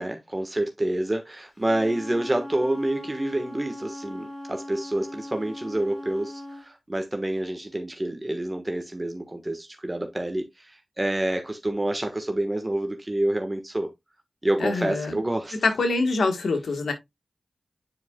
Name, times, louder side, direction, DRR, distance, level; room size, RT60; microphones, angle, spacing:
voice 1, 0.0-13.9 14.4-15.6, right 1 dB, 25° right, 1.3 m, -28 dB
Wind instrument woodwind instrument, 1.6-6.7, left 1 dB, 55° left, 3.7 m, -39 dB
voice 2, 14.6-15.2 15.6-16.9, left 3 dB, 85° left, 1.3 m, -24 dB
10.0 x 4.6 x 2.2 m
cardioid pair, 45°, 0 cm